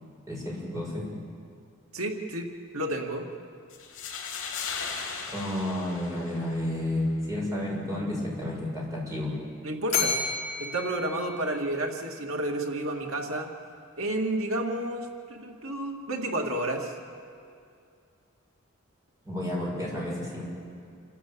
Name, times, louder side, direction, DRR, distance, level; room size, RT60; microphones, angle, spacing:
voice 1, 0.3-1.0 5.3-9.3 19.2-20.4, left 1 dB, 15° right, -4 dB, 7.1 m, -31 dB
voice 2, 1.9-3.3 9.6-10.2 10.6-13.5 14.0-16.9, right 1 dB, 80° right, 2 dB, 2.2 m, -31 dB
sound 1, 3.7-6.7, left 5 dB, 65° left, 3.4 m, -37 dB
Bell, 9.9-12.2, left 5 dB, 40° left, 4.5 m, -32 dB
28.0 x 13.0 x 8.8 m, 2.4 s
head